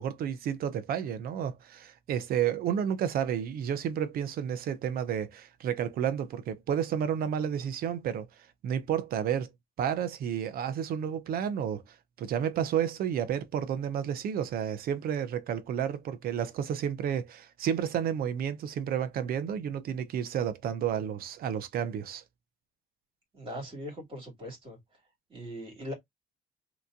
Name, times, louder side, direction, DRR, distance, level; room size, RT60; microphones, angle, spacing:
voice 1, 0.0-8.3 8.6-9.5 9.8-22.2, right 9 dB, 60° right, 0.7 m, -31 dB
voice 2, 23.3-24.8 25.3-25.9, equal, 30° right, 2.4 m, -40 dB
3.4 x 3.0 x 2.6 m
cardioid pair, 110°, 17 cm